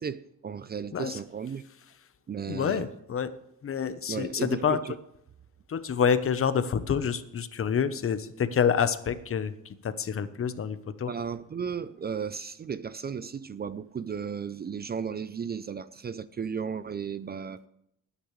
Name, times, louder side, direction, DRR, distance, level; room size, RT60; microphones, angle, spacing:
voice 1, 0.0-1.6 2.3-2.9 4.1-5.0 11.1-17.6, right 6 dB, 30° right, 0.5 m, -35 dB
voice 2, 2.5-3.3 3.6-4.8 5.7-11.1, left 7 dB, 45° left, 1.0 m, -28 dB
19.0 x 10.0 x 3.3 m
cardioid pair, 125°, 32 cm